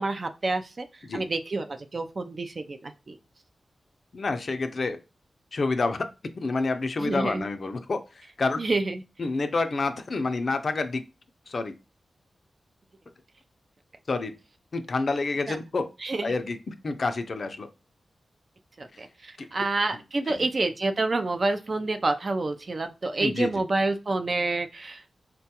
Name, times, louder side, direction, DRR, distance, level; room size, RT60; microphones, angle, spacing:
voice 1, 0.0-0.9 1.1-3.2 7.0-7.4 8.6-9.0 15.5-15.6 16.0-16.3 18.8-25.0, right 2 dB, 50° right, 7 dB, 0.4 m, -28 dB
voice 2, 4.1-5.0 5.5-6.0 6.4-8.0 8.4-8.6 9.2-11.0 11.5-11.7 14.1-14.3 14.7-15.9 16.2-17.7 20.3-20.4 23.2-23.6, left 3 dB, 60° left, 8 dB, 0.4 m, -28 dB
3.6 x 2.2 x 2.8 m, 0.29 s
cardioid pair, 60°, 0 cm